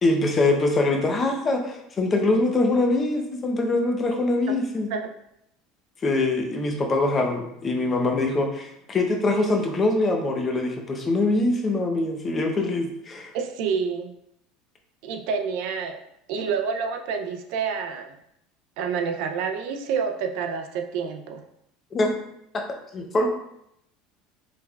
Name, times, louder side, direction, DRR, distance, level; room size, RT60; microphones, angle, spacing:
voice 1, 0.0-4.9 6.0-13.3 21.9-22.1 22.5-22.6 22.9-23.3, left 2 dB, 20° left, 3 dB, 0.6 m, -23 dB
voice 2, 13.3-14.1 15.0-16.0 16.3-18.1 18.8-21.4, right 6 dB, 65° right, 6 dB, 0.5 m, -28 dB
5.3 x 3.3 x 2.3 m, 0.78 s
cardioid pair, 150°, 0 cm